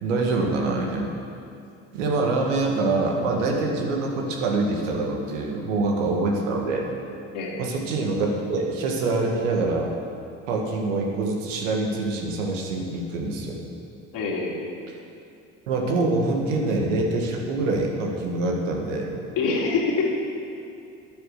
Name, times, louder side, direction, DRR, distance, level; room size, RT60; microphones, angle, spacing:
voice 1, 0.0-1.1 1.9-6.9 7.6-9.9 10.5-13.6 15.7-19.1, right 3 dB, 85° right, 0 dB, 1.8 m, -25 dB
voice 2, 14.1-14.7 19.4-20.1, left 4 dB, 65° left, -3 dB, 3.2 m, -25 dB
11.0 x 8.8 x 6.6 m, 2.6 s
hypercardioid pair, 70°, 36 cm